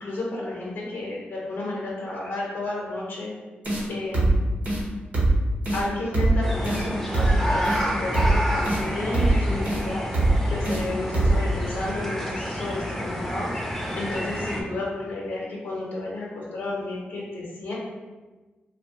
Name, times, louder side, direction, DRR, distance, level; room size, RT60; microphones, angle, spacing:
voice 1, 0.0-3.3 3.9-4.4 5.7-10.0 10.5-13.5 13.9-17.7, left 2 dB, 85° left, -4 dB, 0.6 m, -32 dB
sound 1, 3.6-3.8 4.1-4.4 4.6-4.8 5.1-5.4 5.6-5.8 6.1-6.4 6.6-6.8 7.1-7.4 7.6-7.8 8.1-8.4 8.6-8.8 9.1-9.4 9.6-9.8 10.1-10.4 10.6-10.8 11.1-11.4, right 2 dB, 45° right, 0.9 m, -22 dB
sound 2, 6.4-14.6, equal, 5° left, 0.4 m, -29 dB
2.7 x 2.1 x 2.8 m, 1.2 s
wide cardioid pair, 110°, 4 cm